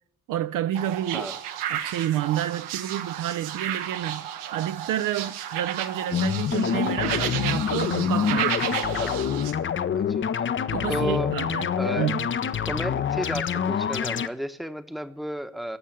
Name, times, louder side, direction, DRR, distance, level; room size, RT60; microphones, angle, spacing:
voice 1, 0.3-1.3 1.7-8.8 10.7-11.7 12.0-12.3, right 11 dB, 50° right, 0.6 m, -29 dB
sound 1, 0.7-9.5, right 10 dB, 75° right, 1.1 m, -32 dB
sound 2, 6.1-14.3, left 8 dB, 30° left, 0.6 m, -26 dB
voice 2, 9.9-10.3 10.9-11.3 11.8-12.2 12.7-15.8, equal, ahead, 1.0 m, -33 dB
14.5 x 7.4 x 8.5 m
figure-of-eight pair, 50°, 43 cm